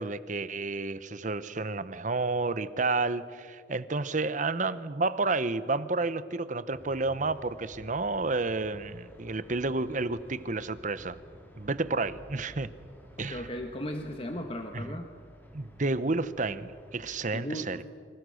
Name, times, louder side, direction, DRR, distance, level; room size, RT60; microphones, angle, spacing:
voice 1, 0.0-11.2 11.6-12.7 13.2-13.5 14.7-14.8 15.5-17.8, right 3 dB, 45° right, 14 dB, 1.0 m, -30 dB
sound 1, 6.7-17.2, equal, 10° left, 4.4 m, -52 dB
voice 2, 13.2-15.1 17.3-17.8, equal, 30° left, 4 dB, 1.5 m, -36 dB
29.0 x 25.5 x 6.5 m, 2.2 s
head